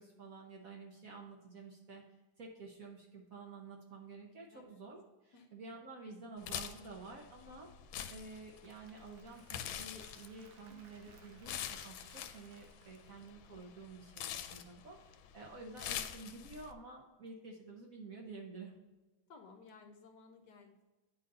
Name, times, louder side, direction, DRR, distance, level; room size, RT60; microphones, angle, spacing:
voice 1, 0.0-2.0 2.4-7.7 8.1-18.7, right 3 dB, 55° right, 1 dB, 1.1 m, -51 dB
sound 1, 6.4-16.7, left 10 dB, 85° left, 1.4 m, -45 dB
Applause / Crowd, 8.3-13.6, right 7 dB, 80° right, 1.4 m, -65 dB
voice 2, 19.3-20.9, left 4 dB, 65° left, 5 dB, 1.2 m, -57 dB
9.3 x 4.0 x 4.0 m, 1.1 s
omnidirectional pair, 2.2 m